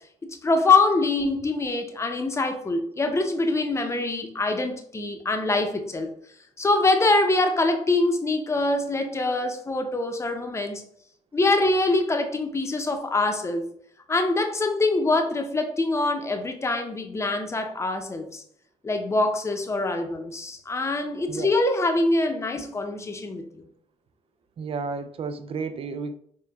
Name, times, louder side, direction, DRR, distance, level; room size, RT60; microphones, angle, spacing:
voice 1, 0.4-6.1 6.6-10.9 11.3-13.7 14.1-18.4 18.8-23.7, left 2 dB, 20° left, 0.7 m, -24 dB
voice 2, 24.6-26.1, right 4 dB, 50° right, 0.4 m, -32 dB
4.8 x 2.2 x 3.4 m
cardioid pair, 80°, 12 cm